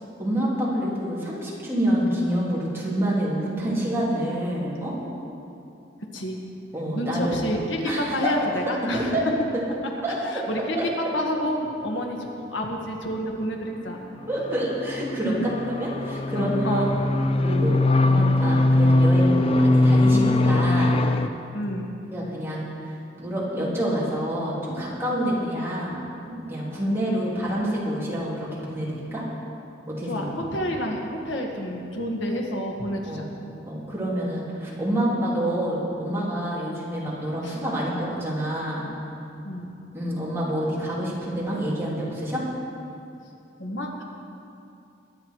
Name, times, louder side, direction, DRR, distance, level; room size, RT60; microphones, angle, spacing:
voice 1, 0.2-5.0 6.7-7.4 7.8-8.3 8.9-9.2 10.0-10.4 10.8-10.9 11.8-11.9 14.3-15.3 15.7-16.9 17.3-21.0 22.1-22.9 23.2-26.0 26.3-29.2 29.9-30.3 33.1-33.2 33.6-38.9 39.9-42.4, right 1 dB, 15° right, -7 dB, 3.5 m, -27 dB
voice 2, 6.9-9.3 10.2-14.0 15.2-15.5 16.3-17.0 21.5-21.9 25.2-25.3 30.0-33.3 37.4-37.6 39.4-39.7 43.6-44.0, equal, 90° left, 1 dB, 1.7 m, -29 dB
sound 1, 14.2-21.3, left 2 dB, 30° left, 0.6 m, -21 dB
22.0 x 9.5 x 4.7 m, 2.7 s
head